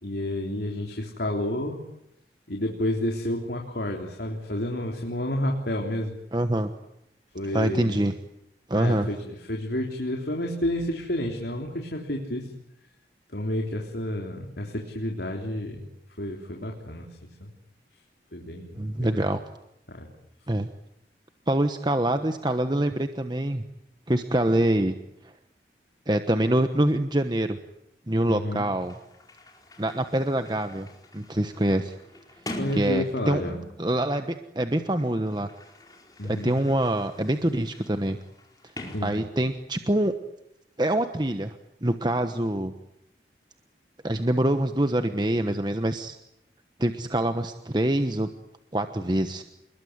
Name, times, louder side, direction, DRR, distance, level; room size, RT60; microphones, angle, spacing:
voice 1, 0.0-1.8 2.5-6.2 7.3-8.0 8.7-9.2 9.5-12.5 13.3-15.9 16.2-17.1 17.4-17.5 18.3-19.1 19.9-20.1 28.3-28.7 32.6-33.6 36.2-36.6 38.9-39.1, left 1 dB, 70° left, 1 dB, 3.7 m, -30 dB
voice 2, 6.3-6.7 7.5-8.1 8.7-9.1 18.8-19.4 20.5-20.7 21.5-23.6 24.1-25.0 26.1-27.6 28.1-29.0 29.8-30.9 31.1-31.9 32.7-33.4 33.8-35.5 36.2-38.2 39.0-40.1 40.8-41.5 41.8-42.7 44.0-46.1 46.8-48.3 48.7-49.4, right 1 dB, 25° right, 8 dB, 1.2 m, -25 dB
Sliding door, 28.8-33.8 34.7-39.7, left 1 dB, 20° left, 4.7 m, -44 dB
28.5 x 21.5 x 9.7 m, 0.80 s
head